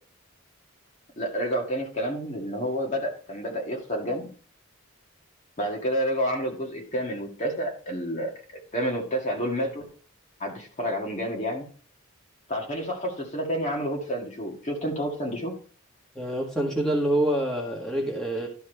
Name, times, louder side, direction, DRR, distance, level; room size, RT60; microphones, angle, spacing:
voice 1, 1.2-4.3 5.6-9.9 10.4-11.7 12.5-15.5, equal, 35° left, 1.9 m, -29 dB
voice 2, 16.1-18.5, right 1 dB, 5° left, 1.7 m, -26 dB
12.0 x 4.6 x 4.5 m
head